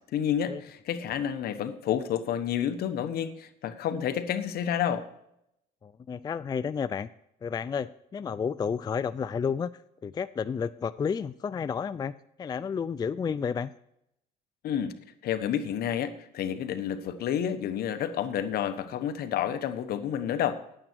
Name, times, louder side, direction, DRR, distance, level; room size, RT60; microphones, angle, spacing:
voice 1, 0.1-5.1 14.6-14.9 15.2-20.6, left 9 dB, 65° left, 10 dB, 1.1 m, -30 dB
voice 2, 5.8-7.1 7.4-9.7 10.0-12.1 12.4-13.7, left 6 dB, 25° left, 14 dB, 0.3 m, -31 dB
10.5 x 8.9 x 4.5 m, 0.79 s
cardioid pair, 110°, 17 cm